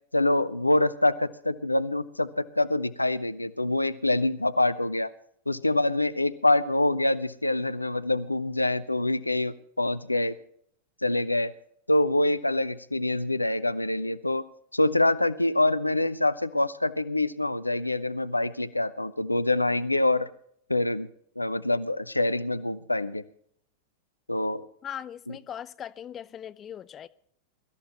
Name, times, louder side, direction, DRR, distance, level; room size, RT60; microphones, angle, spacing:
voice 1, 0.1-5.1 5.5-10.3 11.0-11.5 11.9-14.4 14.7-20.3 20.7-21.1 21.4-23.2 24.3-24.6, left 2 dB, 85° left, 0.5 m, -25 dB
voice 2, 24.8-27.1, left 9 dB, 25° left, 0.5 m, -39 dB
23.0 x 13.5 x 3.0 m
figure-of-eight pair, 90°, 0 cm